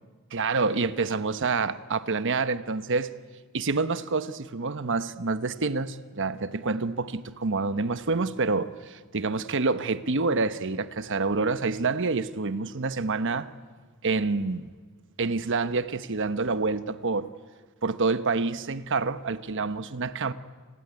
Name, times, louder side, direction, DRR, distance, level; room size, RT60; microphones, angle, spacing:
voice 1, 0.3-3.1 3.5-13.5 14.0-14.7 15.2-17.3 17.8-20.3, right 3 dB, 60° right, 1.1 m, -27 dB
29.5 x 21.0 x 9.7 m
head